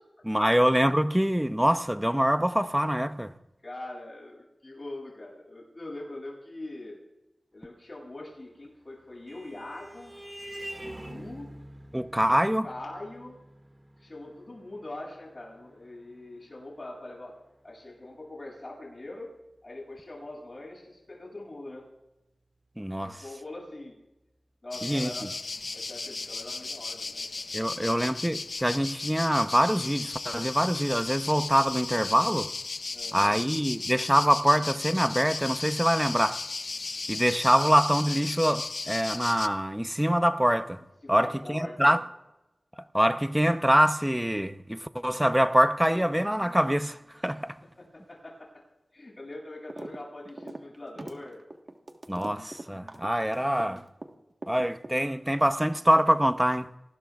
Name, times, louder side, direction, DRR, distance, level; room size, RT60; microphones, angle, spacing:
voice 1, 0.2-3.3 11.9-12.7 22.8-23.2 24.8-25.1 27.5-32.5 33.1-36.4 37.1-40.8 41.1-42.0 42.9-47.6 52.1-53.8 54.5-56.7, equal, 10° right, 0.8 m, -24 dB
voice 2, 3.6-7.0 7.5-10.1 10.8-11.5 12.6-13.4 14.0-17.4 17.6-19.3 19.6-21.9 23.0-24.0 24.6-25.2 25.7-27.7 32.9-33.4 41.0-41.9 47.6-48.6 48.9-51.4, left 2 dB, 50° left, 7.9 m, -42 dB
Vehicle horn car horn honking, 8.7-17.6, right 1 dB, 25° right, 2.1 m, -46 dB
sound 1, 24.7-39.5, left 3 dB, 80° left, 0.6 m, -36 dB
sound 2, 49.7-50.0 50.2-54.1 54.4-55.3, right 2 dB, 55° right, 1.5 m, -41 dB
26.5 x 19.5 x 2.5 m
wide cardioid pair, 45°, 0 cm